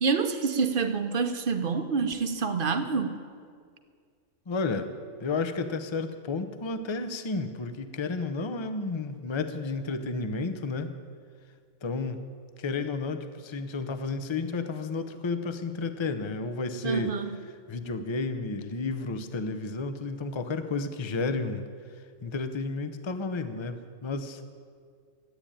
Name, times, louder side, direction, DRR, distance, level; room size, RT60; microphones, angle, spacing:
voice 1, 0.0-3.2 16.8-17.3, right 5 dB, 45° right, 8 dB, 1.0 m, -27 dB
voice 2, 4.5-4.9 5.2-11.0 11.8-12.2 12.6-17.1 17.7-21.6 22.2-24.4, left 3 dB, 25° left, 9 dB, 0.6 m, -32 dB
13.5 x 8.8 x 10.0 m, 2.1 s
omnidirectional pair, 1.4 m